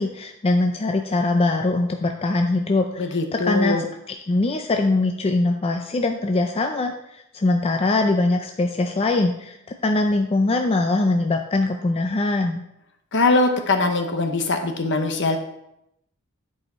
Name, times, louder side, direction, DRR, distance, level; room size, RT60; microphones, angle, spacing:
voice 1, 0.0-9.6 9.8-12.6, left 2 dB, 25° left, 4 dB, 0.4 m, -22 dB
voice 2, 3.0-3.8 13.1-15.4, left 3 dB, 60° left, 6 dB, 1.0 m, -21 dB
10.5 x 4.8 x 4.3 m, 0.81 s
head